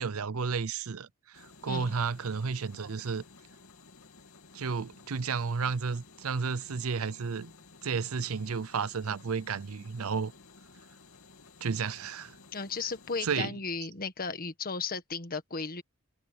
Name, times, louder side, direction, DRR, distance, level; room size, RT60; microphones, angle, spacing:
voice 1, 0.0-3.2 4.5-7.5 7.8-10.3 11.6-12.3 13.2-13.6, right 5 dB, 85° right, 0.6 m, -32 dB
sound 1, 1.3-13.4, left 4 dB, 85° left, 2.5 m, -55 dB
voice 2, 12.5-15.8, left 4 dB, 45° left, 1.6 m, -35 dB
head